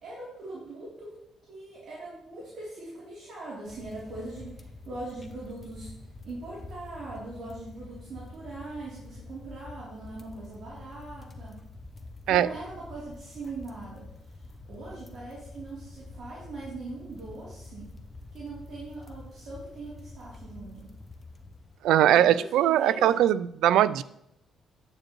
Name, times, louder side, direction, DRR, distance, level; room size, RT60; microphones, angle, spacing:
voice 1, 0.0-1.2 1.5-11.7 12.3-18.0 18.3-20.9 22.2-23.2, right 2 dB, 65° right, -7 dB, 3.2 m, -41 dB
sound 1, 3.7-22.0, left 2 dB, 25° left, 0.8 m, -47 dB
voice 2, 21.8-24.0, right 11 dB, 85° right, 17 dB, 0.3 m, -21 dB
9.1 x 8.7 x 3.1 m, 0.77 s
cardioid pair, 90°, 0 cm